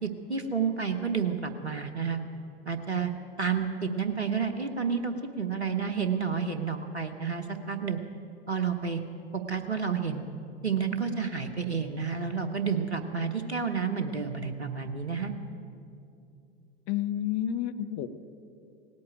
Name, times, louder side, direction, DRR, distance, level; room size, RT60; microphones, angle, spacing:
voice 1, 0.0-2.2 2.7-3.1 3.4-8.0 8.5-9.0 9.5-10.2 10.6-15.3, right 6 dB, 90° right, 6 dB, 1.1 m, -30 dB
voice 2, 16.9-18.1, left 11 dB, 40° left, 11 dB, 0.9 m, -30 dB
18.0 x 8.6 x 9.0 m, 2.5 s
figure-of-eight pair, 90°, 32 cm